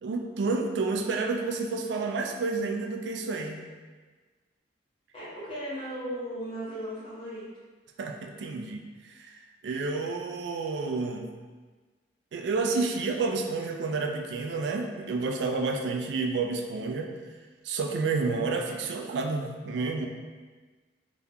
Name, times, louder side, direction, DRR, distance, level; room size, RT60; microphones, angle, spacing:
voice 1, 0.0-3.6 8.0-9.3 9.6-11.3 12.3-17.1 17.6-20.1, right 3 dB, 75° right, 2 dB, 0.3 m, -30 dB
voice 2, 5.1-7.4, equal, 30° left, -11 dB, 1.2 m, -36 dB
2.8 x 2.3 x 3.5 m, 1.4 s
head